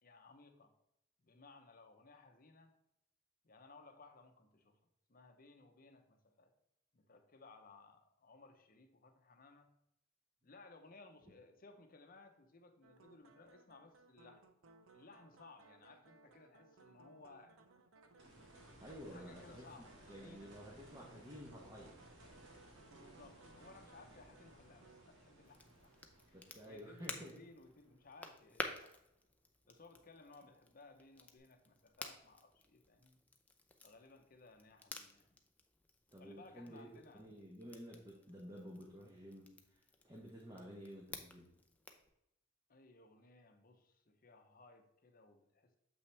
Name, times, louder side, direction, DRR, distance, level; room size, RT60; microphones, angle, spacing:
voice 1, 0.0-0.7 1.2-2.7 3.4-4.8 5.1-6.5 6.9-9.7 10.4-14.5 14.9-17.6 19.1-20.5 22.9-25.9 26.3-28.9 29.7-33.2 33.8-35.4 36.2-37.3 42.7-45.8, left 3 dB, 45° left, 6 dB, 0.8 m, -61 dB
sound 1, 12.8-25.1, right 3 dB, 85° right, 0.7 m, -64 dB
sound 2, 18.2-29.1 31.4-31.5, right 1 dB, 60° right, 2.1 m, -61 dB
voice 2, 18.8-19.6 20.1-21.9 26.3-27.3 36.1-36.9 37.1-39.5 40.0-41.5, equal, 20° right, -3 dB, 1.1 m, -52 dB
Crackle, 25.4-42.1, left 2 dB, 5° left, 0.5 m, -53 dB
7.1 x 5.7 x 3.3 m, 0.82 s
head